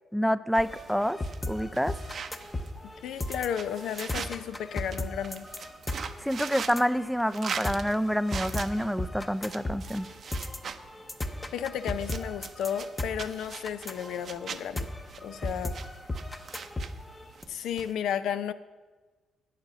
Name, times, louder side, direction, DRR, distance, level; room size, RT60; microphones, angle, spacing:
voice 1, 0.1-1.2 1.5-1.9 6.2-10.1, equal, ahead, 15 dB, 0.4 m, -27 dB
sound 1, 0.5-17.9, right 6 dB, 50° right, 0.6 m, -43 dB
sound 2, 0.6-17.4, left 1 dB, 15° left, 0.8 m, -36 dB
voice 2, 3.0-5.5 11.5-14.9 15.2-15.8 17.5-18.5, left 9 dB, 80° left, 12 dB, 0.5 m, -33 dB
9.1 x 7.3 x 6.7 m, 1.3 s
cardioid pair, 90°, 0 cm